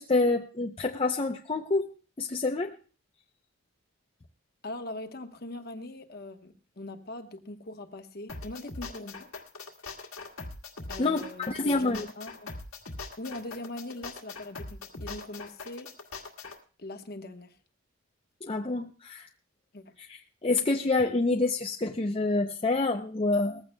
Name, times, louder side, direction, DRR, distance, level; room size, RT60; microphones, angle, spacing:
voice 1, 0.0-1.9 2.2-2.8 11.0-12.1 18.4-19.3 20.1-23.6, left 3 dB, 25° left, 3 dB, 0.5 m, -27 dB
voice 2, 4.6-9.3 10.9-12.5 13.2-15.9 16.8-17.6 19.7-19.9, left 2 dB, 45° left, 7 dB, 1.1 m, -41 dB
sound 1, 8.3-16.6, left 3 dB, 85° left, 1.8 m, -41 dB
20.0 x 15.0 x 2.2 m, 0.36 s
head